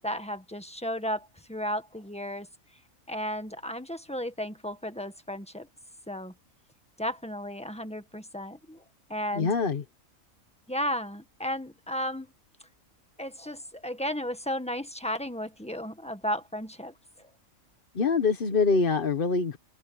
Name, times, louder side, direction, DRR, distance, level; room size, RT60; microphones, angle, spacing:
voice 1, 0.0-2.5 3.1-5.7 6.1-6.3 7.0-8.8 9.1-9.5 10.7-12.3 13.2-17.3, equal, 5° left, 1.5 m, -34 dB
voice 2, 9.3-9.8 17.9-19.6, left 4 dB, 40° left, 1.2 m, -24 dB
omnidirectional pair, 1.5 m